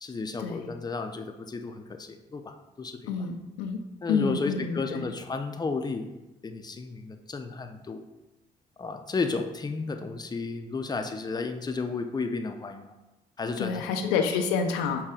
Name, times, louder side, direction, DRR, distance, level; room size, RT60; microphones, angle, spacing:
voice 1, 0.0-3.1 4.0-6.1 6.4-8.0 8.8-12.9 13.4-14.0, left 4 dB, 20° left, 6 dB, 0.5 m, -33 dB
voice 2, 3.1-3.8 4.1-5.0 13.6-15.0, left 6 dB, 85° left, 5 dB, 0.4 m, -28 dB
5.5 x 2.3 x 3.6 m, 1.0 s
hypercardioid pair, 45°, 20 cm